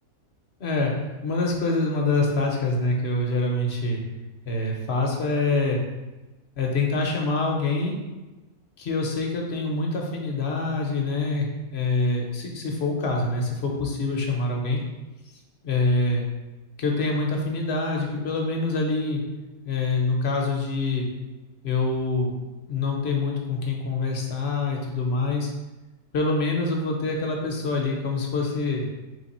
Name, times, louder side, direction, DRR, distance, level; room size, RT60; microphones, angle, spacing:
voice 1, 0.6-4.0 4.5-5.8 6.6-8.0 8.8-14.8 15.6-16.2 16.8-19.2 19.6-21.1 21.6-22.4 22.7-25.5 26.1-28.9, left 3 dB, 55° left, 0 dB, 0.9 m, -25 dB
3.7 x 3.2 x 4.1 m, 1.1 s
omnidirectional pair, 1.6 m